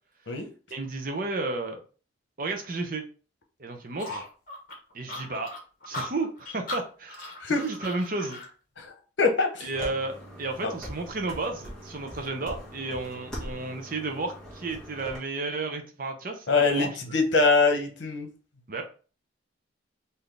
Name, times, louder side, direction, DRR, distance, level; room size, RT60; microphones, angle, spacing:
voice 1, 0.7-1.8 2.4-3.0 3.6-4.2 4.9-5.5 5.9-8.4 9.6-16.9 18.7-18.8, right 3 dB, 45° right, 4 dB, 0.7 m, -32 dB
sound 1, 4.0-8.5, left 2 dB, 45° left, 1.2 m, -38 dB
voice 2, 8.8-9.7 10.6-10.7 16.5-18.3, left 3 dB, 75° left, 3 dB, 0.9 m, -24 dB
sound 2, 9.7-15.2, equal, 5° left, 1.5 m, -41 dB
3.9 x 2.8 x 3.3 m, 0.37 s
head